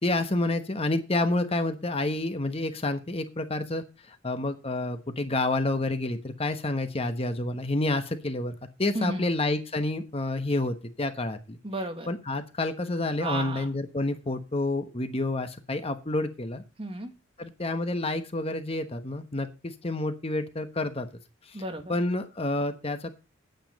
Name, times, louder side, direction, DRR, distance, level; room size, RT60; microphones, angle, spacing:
voice 1, 0.0-11.6 12.1-16.6 17.4-21.1 21.5-21.6 21.9-23.1, left 2 dB, 30° left, 8 dB, 1.1 m, -29 dB
voice 2, 8.9-9.3 11.6-12.1 13.2-13.7 16.8-17.1 21.5-21.9, right 2 dB, 30° right, 6 dB, 1.7 m, -33 dB
9.5 x 9.3 x 5.3 m, 0.30 s
head